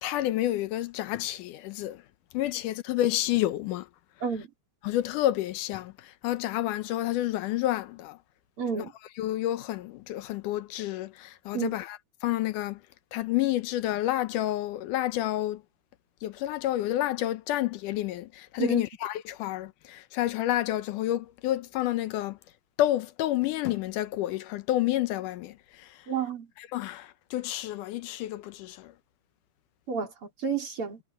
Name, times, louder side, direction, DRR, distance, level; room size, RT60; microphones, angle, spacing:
voice 1, 0.0-2.0 2.3-3.9 4.8-8.2 8.7-8.9 9.2-12.8 13.1-15.6 16.2-22.4 22.8-26.0 26.6-28.9, left 14 dB, 75° left, 2.2 m, -29 dB
voice 2, 8.6-8.9 11.5-11.7 18.6-18.8 26.1-26.5 29.9-30.1 30.4-31.0, right 6 dB, 40° right, 4.2 m, -30 dB
omnidirectional pair, 3.9 m